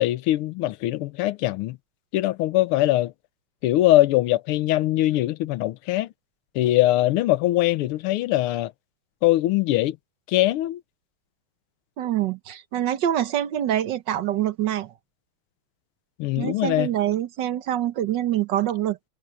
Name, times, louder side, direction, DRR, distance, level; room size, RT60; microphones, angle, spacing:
voice 1, 0.0-1.8 2.1-3.1 3.6-6.1 6.5-8.7 9.2-10.0 10.3-10.8 16.2-16.9, left 15 dB, 85° left, 1.6 m, -22 dB
voice 2, 12.0-14.9 16.4-19.1, right 11 dB, 60° right, 1.5 m, -25 dB
omnidirectional pair, 2.4 m